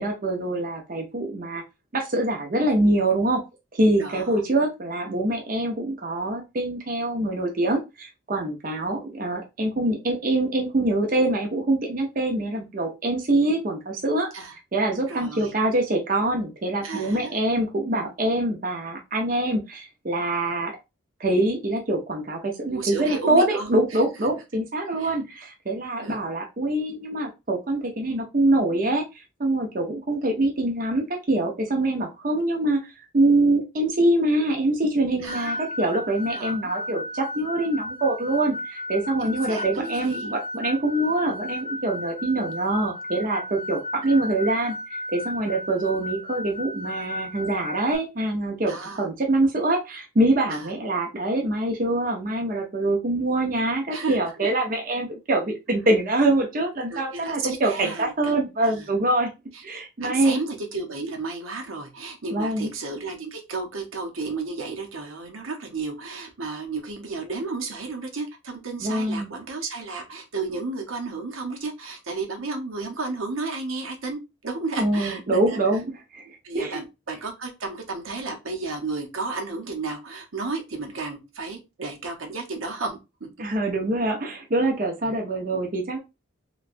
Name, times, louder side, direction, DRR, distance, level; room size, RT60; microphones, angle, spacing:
voice 1, 0.0-1.6 1.9-3.4 3.7-14.3 14.7-20.8 21.2-59.3 59.6-60.4 62.3-62.7 68.8-69.3 74.8-75.9 76.1-76.8 83.4-86.0, right 1 dB, 45° right, 2 dB, 0.6 m, -24 dB
voice 2, 4.0-4.4 14.3-14.6 15.1-15.6 16.8-17.3 22.7-24.0 25.0-25.2 26.0-26.2 35.2-35.7 36.3-36.9 39.2-40.3 41.0-41.1 44.0-44.2 48.6-49.1 50.5-50.7 53.9-54.5 56.9-58.4 58.6-58.9 59.5-59.6 60.0-75.6 76.4-83.3 85.0-85.1, right 3 dB, 90° right, 3 dB, 1.0 m, -33 dB
sound 1, 35.3-48.0, left 1 dB, 25° right, 1.0 m, -34 dB
3.2 x 3.0 x 2.5 m, 0.24 s
head